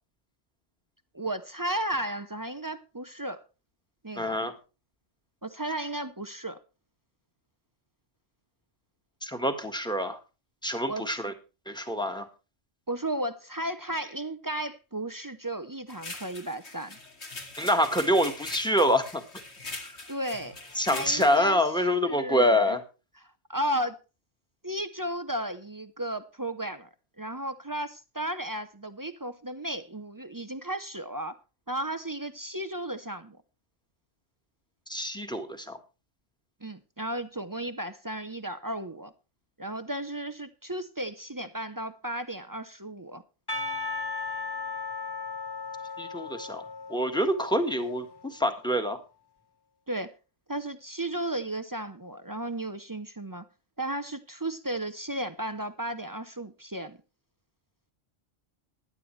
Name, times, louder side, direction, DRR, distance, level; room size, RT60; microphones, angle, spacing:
voice 1, 1.1-3.4 4.0-4.5 5.4-6.6 10.8-11.1 12.9-17.0 20.1-20.6 20.9-21.6 22.0-22.8 23.5-24.0 24.6-26.9 27.2-31.4 31.7-33.4 36.6-39.1 39.6-43.2 49.9-50.1 50.5-53.5 53.8-57.0, right 1 dB, 25° right, 0.5 m, -34 dB
voice 2, 4.2-4.5 9.2-10.2 10.6-11.3 11.7-12.3 17.6-19.2 19.8-19.9 20.7-22.8 34.9-35.8 46.0-46.6 46.9-49.0, equal, 5° left, 1.5 m, -26 dB
sound 1, 15.9-21.5, left 2 dB, 60° left, 2.7 m, -42 dB
Percussion, 43.5-48.3, left 4 dB, 20° left, 1.2 m, -36 dB
16.5 x 11.0 x 3.2 m
omnidirectional pair, 1.3 m